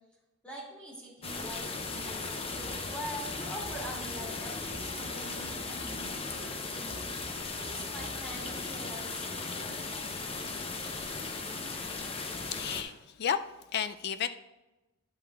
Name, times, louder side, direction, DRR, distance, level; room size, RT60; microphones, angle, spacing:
voice 1, 0.4-7.0 7.6-9.3, equal, 5° left, 2.4 m, -44 dB
sound 1, 1.2-12.8, left 3 dB, 30° left, 0.7 m, -37 dB
sound 2, 1.8-8.7, equal, 35° right, 1.3 m, -50 dB
voice 2, 12.5-12.9 13.2-13.4 13.7-14.3, left 8 dB, 50° left, 0.3 m, -31 dB
10.5 x 9.2 x 2.4 m
head